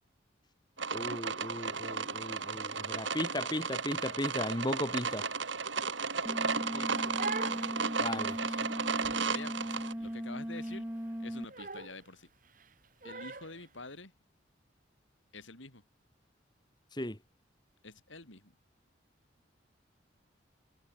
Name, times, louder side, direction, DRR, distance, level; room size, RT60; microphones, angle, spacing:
sound 1, 0.8-9.9, right 4 dB, 75° right, 4.8 m, -34 dB
voice 1, 0.9-5.3 8.0-8.4 16.9-17.2, left 1 dB, 20° left, 4.8 m, -36 dB
sound 2, 6.3-11.4, equal, 10° right, 1.6 m, -38 dB
voice 2, 6.7-7.2 7.4-7.7 8.4-8.7 9.3-10.9 11.2-12.3 13.0-14.1 15.3-15.8 17.8-18.5, left 3 dB, 80° left, 5.2 m, -48 dB
Crying sobbing, 6.8-13.7, right 3 dB, 45° right, 4.5 m, -44 dB
head